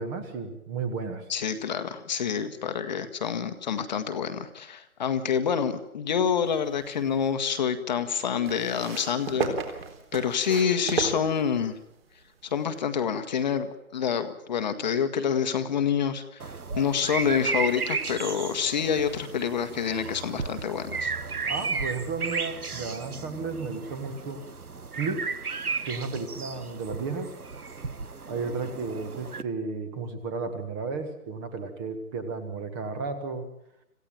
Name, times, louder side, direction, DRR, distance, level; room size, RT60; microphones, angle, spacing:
voice 1, 0.0-1.3 21.5-24.4 24.9-25.4 25.8-27.3 28.3-33.5, right 4 dB, 15° right, 9 dB, 1.5 m, -33 dB
voice 2, 1.3-9.6 10.1-11.8 12.4-13.7 13.9-16.4 16.8-21.1, left 7 dB, 30° left, 8 dB, 1.4 m, -27 dB
sound 1, 6.5-7.3 8.4-11.9 12.8-12.9, right 5 dB, 40° right, 3.9 m, -34 dB
sound 2, 16.4-29.4, right 4 dB, 85° right, 1.3 m, -34 dB
26.5 x 16.0 x 9.0 m, 0.82 s
figure-of-eight pair, 145°, 44 cm